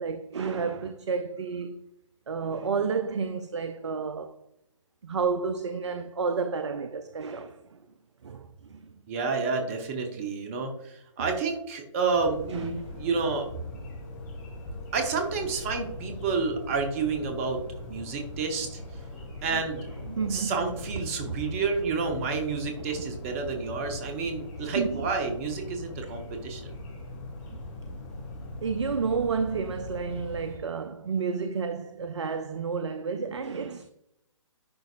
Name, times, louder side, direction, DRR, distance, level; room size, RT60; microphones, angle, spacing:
voice 1, 0.0-1.8 2.3-4.3 5.0-7.8 8.2-8.9 12.5-12.7 19.5-19.6 20.1-20.5 21.2-21.4 22.9-23.0 24.0-24.2 24.6-25.1 27.5-27.6 28.6-33.9, right 5 dB, 60° right, 0.5 m, -31 dB
voice 2, 9.1-13.5 14.9-17.6 17.9-18.8 19.4-19.9 20.3-26.7, right 4 dB, 25° right, 0.9 m, -30 dB
sound 1, 12.1-30.6, left 1 dB, 30° left, 2.0 m, -41 dB
10.5 x 3.9 x 2.5 m
figure-of-eight pair, 135°, 16 cm